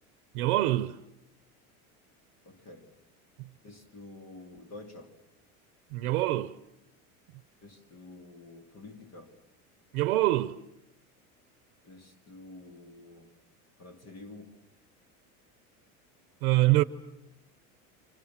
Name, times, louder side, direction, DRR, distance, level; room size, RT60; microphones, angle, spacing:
voice 1, 0.3-1.0 3.4-3.5 5.9-6.5 9.9-10.6 16.4-16.8, right 17 dB, 80° right, 1.0 m, -25 dB
voice 2, 2.5-2.9 3.6-5.2 7.6-9.4 11.8-13.3 13.8-14.5, left 2 dB, 35° left, 2.8 m, -49 dB
29.0 x 25.0 x 7.4 m
supercardioid pair, 110°, 43 cm